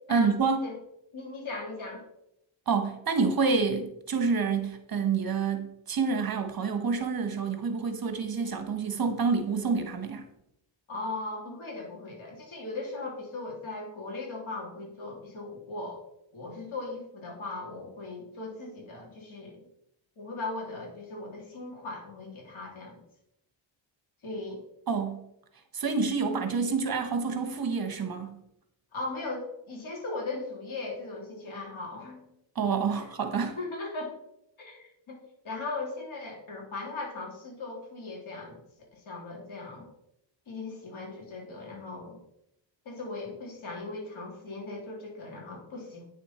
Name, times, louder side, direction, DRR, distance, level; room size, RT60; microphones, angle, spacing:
voice 1, 0.1-0.6 2.7-10.3 24.9-25.2 25.7-28.4 32.5-33.6, right 5 dB, 45° right, 1.3 m, -28 dB
voice 2, 1.1-2.0 10.9-16.0 16.3-19.6 20.2-23.0 24.2-24.6 28.9-32.3 33.0-33.1 33.5-34.1 34.6-35.2 35.4-39.9 40.5-42.2 42.8-46.0, left 3 dB, 80° left, 3.4 m, -38 dB
9.3 x 6.6 x 4.4 m
wide cardioid pair, 115°, 48 cm